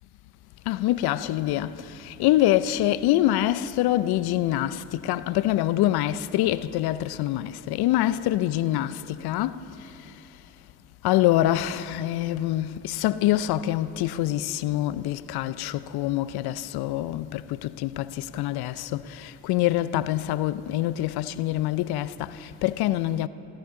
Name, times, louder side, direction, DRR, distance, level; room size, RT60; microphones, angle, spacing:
voice 1, 0.7-9.6 11.0-23.3, left 14 dB, 70° left, 0.6 m, -25 dB
27.5 x 12.5 x 3.8 m
hypercardioid pair, 50°, 39 cm